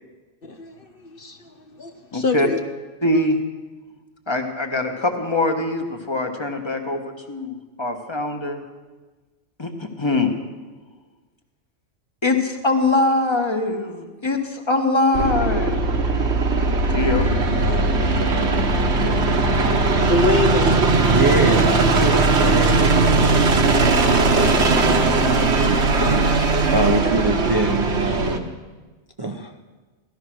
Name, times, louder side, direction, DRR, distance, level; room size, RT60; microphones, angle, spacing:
voice 1, 0.4-2.6 3.1-3.2 20.0-20.8, left 2 dB, 50° left, 6 dB, 1.1 m, -25 dB
voice 2, 2.1-2.5 3.0-3.4 4.3-7.0 7.3-8.6 9.6-10.3 12.2-15.8 16.9-17.3, left 2 dB, 25° left, 4 dB, 1.6 m, -22 dB
sound 1, 15.1-28.4, right 3 dB, 65° right, 1.5 m, -19 dB
voice 3, 17.5-18.8 21.0-23.8 24.1-28.5 29.2-29.5, right 2 dB, 25° right, 4 dB, 0.7 m, -26 dB
17.0 x 13.5 x 6.3 m, 1.3 s
omnidirectional pair, 1.2 m